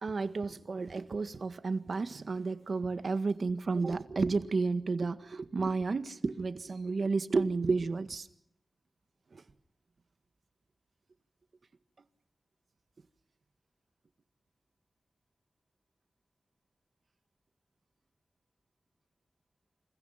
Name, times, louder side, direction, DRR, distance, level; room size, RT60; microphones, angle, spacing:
voice 1, 0.0-8.3 9.3-9.4, right 4 dB, 70° right, 1.7 m, -32 dB
28.5 x 27.0 x 5.9 m
wide cardioid pair, 75°, 0 cm